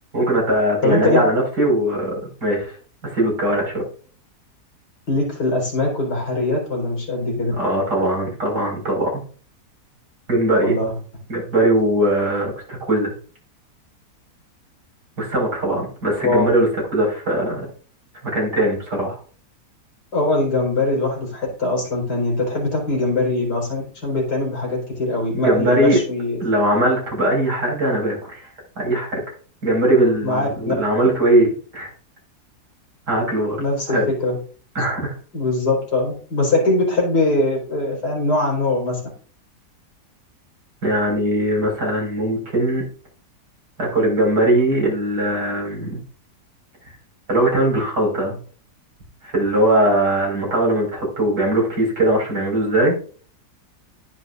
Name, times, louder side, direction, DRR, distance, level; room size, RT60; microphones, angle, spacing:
voice 1, 0.1-2.8 3.0-3.8 7.6-9.2 10.3-10.8 11.3-13.1 15.2-17.7 18.2-19.2 25.3-26.0 26.4-29.2 29.6-31.9 33.1-33.6 33.9-34.1 34.8-35.1 40.8-42.8 43.8-46.0 47.3-48.4 49.2-52.9, right 1 dB, 85° right, -1 dB, 5.8 m, -20 dB
voice 2, 0.8-1.2 5.1-7.5 10.6-10.9 16.2-16.5 20.1-26.4 30.2-30.7 33.6-34.4 35.3-39.0, left 2 dB, 85° left, -1 dB, 5.2 m, -22 dB
19.5 x 6.8 x 2.6 m, 0.42 s
omnidirectional pair, 1.7 m